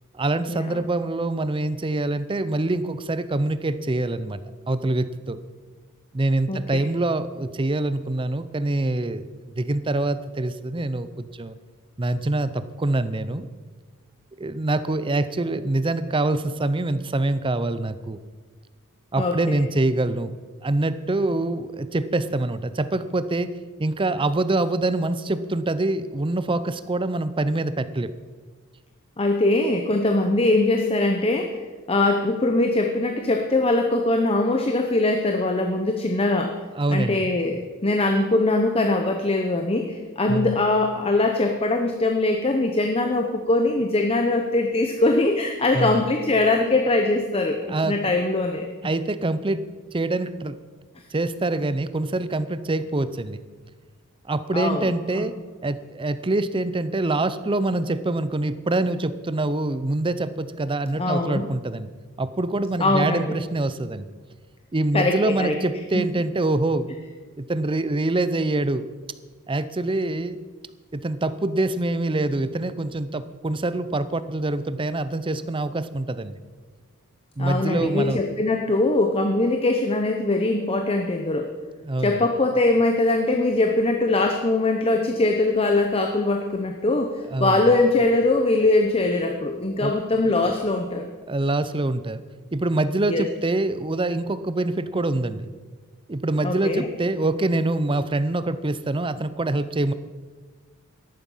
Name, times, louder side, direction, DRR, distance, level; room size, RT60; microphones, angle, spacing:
voice 1, 0.2-4.4 4.7-5.4 6.1-11.6 12.0-13.5 14.4-18.2 19.1-20.3 20.6-23.5 23.8-28.1 36.7-37.2 40.3-40.5 45.7-46.0 47.7-48.0 48.8-49.6 49.9-50.6 51.1-53.4 54.3-55.3 55.6-61.9 62.2-64.1 64.7-66.9 67.4-68.8 69.5-70.4 70.9-76.3 77.4-78.2 81.8-82.2 87.3-87.6 89.8-90.0 91.3-92.2 92.5-95.5 96.1-99.9, right 2 dB, 25° right, 13 dB, 0.6 m, -25 dB
voice 2, 19.2-19.6 29.2-31.6 31.9-36.6 36.9-48.6 54.5-55.3 61.0-61.5 62.8-63.4 64.9-65.6 65.9-66.0 77.4-81.5 82.0-91.1 93.1-93.2 96.4-96.9, left 2 dB, 25° left, 4 dB, 0.8 m, -22 dB
14.0 x 11.0 x 5.6 m, 1.4 s
head